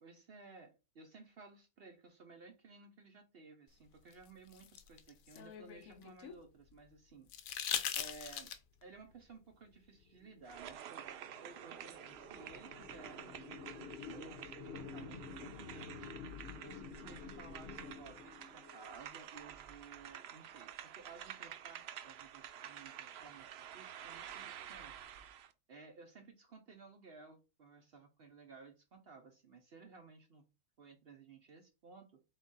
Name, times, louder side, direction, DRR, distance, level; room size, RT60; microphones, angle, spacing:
voice 1, 0.0-7.6 7.9-8.5 8.8-11.1 11.4-16.1 16.6-25.0 25.7-30.5 30.8-32.2, right 4 dB, 50° right, 0.8 m, -57 dB
sound 1, 4.1-6.4 7.3-8.8 10.5-10.6, left 9 dB, 70° left, 1.0 m, -40 dB
sound 2, 10.2-19.0, left 5 dB, 45° left, 1.1 m, -50 dB
sound 3, 10.4-25.5, right 9 dB, 85° right, 0.5 m, -50 dB
3.7 x 3.6 x 4.0 m
omnidirectional pair, 1.6 m